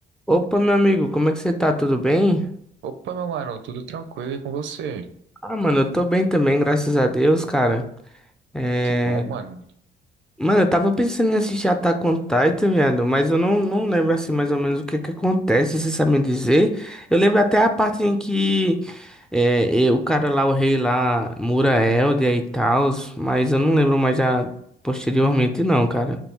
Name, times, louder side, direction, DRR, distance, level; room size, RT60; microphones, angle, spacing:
voice 1, 0.3-2.5 5.4-7.8 8.5-9.2 10.4-24.5 24.8-26.2, equal, 5° left, 6 dB, 0.4 m, -20 dB
voice 2, 2.8-5.1 8.8-9.6, right 7 dB, 70° right, 9 dB, 0.5 m, -31 dB
3.5 x 2.3 x 4.3 m, 0.68 s
cardioid pair, 90°, 20 cm